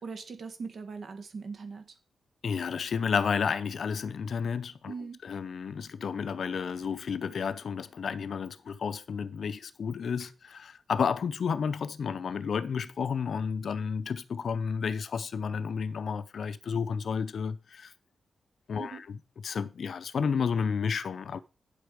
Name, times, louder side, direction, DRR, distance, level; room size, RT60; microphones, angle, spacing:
voice 1, 0.0-2.0 4.9-5.2 18.8-19.0, right 5 dB, 55° right, 1.9 m, -40 dB
voice 2, 2.4-4.9 5.2-17.9 18.7-19.0 19.4-21.4, left 6 dB, 60° left, 0.5 m, -31 dB
9.3 x 7.9 x 5.0 m
wide cardioid pair, 150°, 0 cm